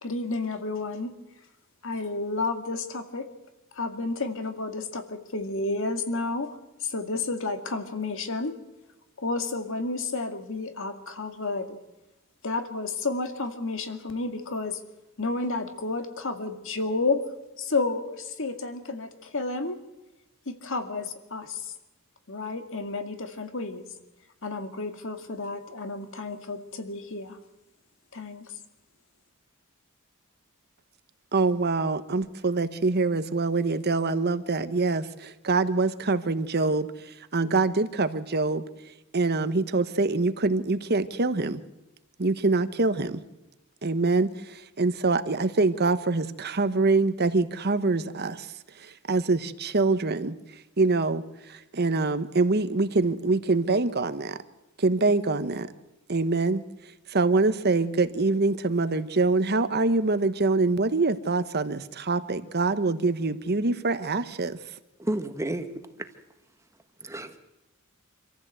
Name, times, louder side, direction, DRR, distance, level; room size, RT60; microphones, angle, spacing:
voice 1, 0.0-1.1 1.8-3.3 3.8-6.5 6.8-8.5 9.2-11.8 12.4-14.8 15.2-17.2 17.6-19.8 20.5-21.7 22.3-23.9 24.4-27.4 28.1-28.5, left 3 dB, 65° left, 7 dB, 2.2 m, -31 dB
voice 2, 31.3-38.6 39.1-41.6 42.2-43.2 43.8-48.5 48.8-50.4 50.8-51.2 51.5-54.4 54.8-55.7 56.1-56.6 57.1-64.6, right 3 dB, 50° right, 12 dB, 1.1 m, -25 dB
voice 3, 65.0-65.7 67.0-67.4, right 1 dB, 15° right, 8 dB, 1.3 m, -30 dB
26.5 x 14.5 x 8.0 m, 1.0 s
head